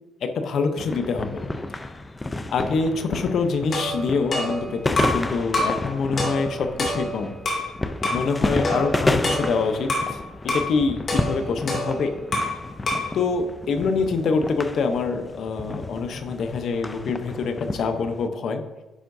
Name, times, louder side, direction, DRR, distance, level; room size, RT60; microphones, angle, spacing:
voice 1, 0.2-1.4 2.5-7.3 8.1-10.2 10.4-12.2 13.1-18.6, left 4 dB, 65° left, 7 dB, 0.8 m, -25 dB
sound 1, 0.8-18.3, left 2 dB, 20° left, 0.5 m, -30 dB
sound 2, 3.7-5.2 5.5-5.8 6.2-7.7 8.0-8.3 8.6-10.1 10.5-10.7 11.1-12.6 12.9-13.1, left 1 dB, 45° left, 2.5 m, -27 dB
10.0 x 5.6 x 2.7 m, 1.1 s
cardioid pair, 90°, 0 cm